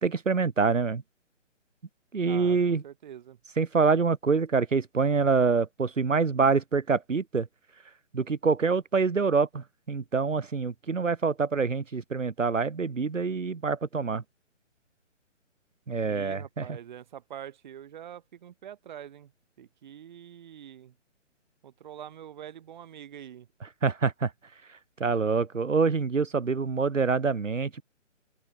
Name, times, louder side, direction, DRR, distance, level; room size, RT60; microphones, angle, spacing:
voice 1, 0.0-1.0 2.1-2.8 3.6-7.5 8.1-14.2 15.9-16.7 23.8-24.3 24.7-27.8, right 4 dB, 85° right, 1.3 m, -26 dB
voice 2, 2.2-2.6 2.8-3.4 16.0-19.3 19.6-20.9 21.6-23.5, right 10 dB, 40° right, 1.4 m, -45 dB
open air
figure-of-eight pair, 145°, 37 cm